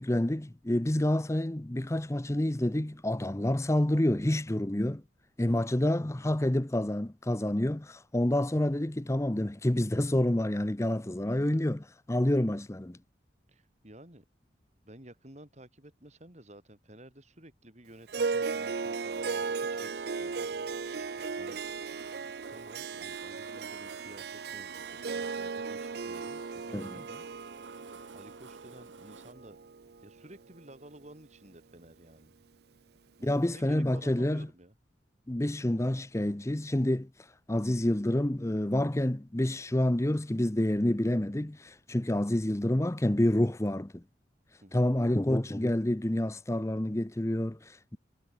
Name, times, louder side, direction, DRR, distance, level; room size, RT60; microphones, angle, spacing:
voice 1, 0.0-5.0 5.4-13.0 26.7-26.9 33.2-34.5 35.3-37.1 37.5-44.0 44.7-48.0, left 1 dB, 15° left, 0.7 m, -28 dB
voice 2, 13.5-14.2 14.8-21.1 21.4-21.6 22.5-27.3 28.1-29.6 30.0-32.3 33.2-34.7 44.6-45.1, right 1 dB, 40° right, 4.0 m, -52 dB
Harp, 18.1-30.6, right 4 dB, 55° right, 0.5 m, -36 dB
sound 1, 18.7-29.3, right 4 dB, 90° right, 2.1 m, -53 dB
head